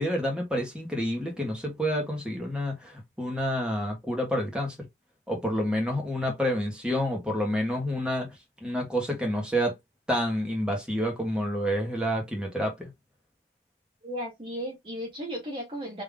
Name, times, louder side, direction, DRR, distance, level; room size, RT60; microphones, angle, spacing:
voice 1, 0.0-4.7 5.3-8.3 8.6-9.7 10.1-12.9, equal, 5° right, 1.5 m, -28 dB
voice 2, 14.0-16.0, equal, 30° right, 1.0 m, -35 dB
3.7 x 3.3 x 3.5 m
head